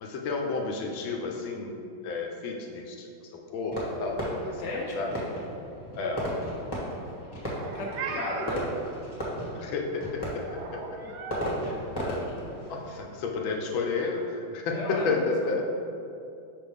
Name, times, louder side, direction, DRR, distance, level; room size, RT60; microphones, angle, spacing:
voice 1, 0.0-3.1 3.5-4.6 4.9-5.1 5.9-6.3 9.5-10.8 12.0-12.2 12.7-15.7, left 3 dB, 80° left, 1 dB, 1.4 m, -31 dB
Fireworks, 3.7-14.3, equal, 15° left, 1.3 m, -36 dB
voice 2, 4.6-5.3 7.7-8.7 12.2-12.4 14.7-15.6, left 1 dB, 50° left, -2 dB, 0.9 m, -35 dB
Meow, 7.4-8.6 10.5-11.5, right 4 dB, 90° right, 1.5 m, -37 dB
5.9 x 5.3 x 3.5 m, 2.6 s
omnidirectional pair, 2.2 m